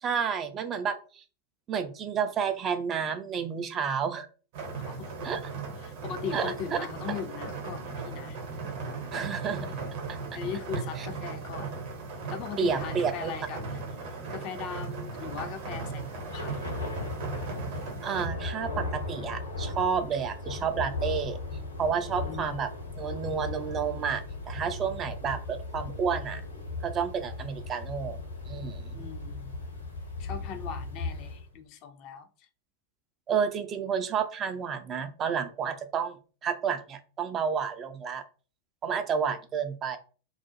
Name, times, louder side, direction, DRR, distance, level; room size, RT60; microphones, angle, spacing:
voice 1, 0.0-1.2 1.7-4.3 5.2-5.4 6.3-6.5 9.1-9.8 11.0-11.1 12.6-13.3 18.0-21.4 21.8-22.7 22.9-26.4 26.8-28.2 28.5-29.0 33.3-36.2 36.4-38.2 38.8-40.0, right 6 dB, 30° right, 0.3 m, -30 dB
sound 1, 4.5-18.3, right 4 dB, 50° right, 0.8 m, -37 dB
voice 2, 4.9-5.3 5.8-8.4 10.3-11.7 12.3-13.8 14.3-16.6 22.2-22.6 28.9-29.6 30.2-32.5, left 7 dB, 40° left, 0.4 m, -39 dB
Thunder / Rain, 15.2-31.5, left 3 dB, 80° left, 1.0 m, -37 dB
2.4 x 2.0 x 2.7 m
figure-of-eight pair, 90°, 0 cm